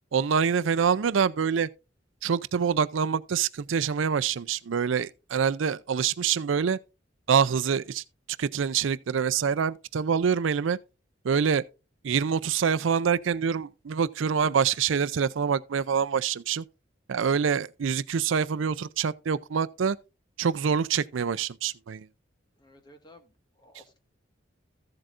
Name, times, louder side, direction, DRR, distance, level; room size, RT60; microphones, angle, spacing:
voice 1, 0.1-1.7 2.2-6.8 7.3-8.0 8.4-10.8 11.2-11.6 12.0-16.6 17.1-20.0 20.4-22.1, right 6 dB, 80° right, 0.4 m, -25 dB
voice 2, 22.6-24.0, left 1 dB, 25° left, 1.6 m, -55 dB
14.5 x 7.8 x 2.5 m
head